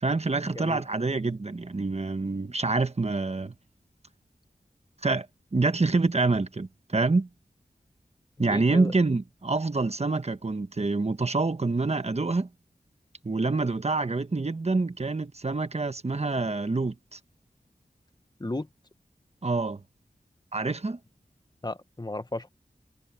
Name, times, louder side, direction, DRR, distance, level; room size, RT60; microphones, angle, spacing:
voice 1, 0.0-3.5 5.0-5.3 5.5-7.3 8.4-12.5 13.2-17.2 19.4-19.8 20.5-21.0, right 3 dB, 45° right, 1.2 m, -26 dB
voice 2, 8.4-8.9 18.4-18.7 21.6-22.5, left 2 dB, 25° left, 1.3 m, -34 dB
wide cardioid pair, 75°, 16 cm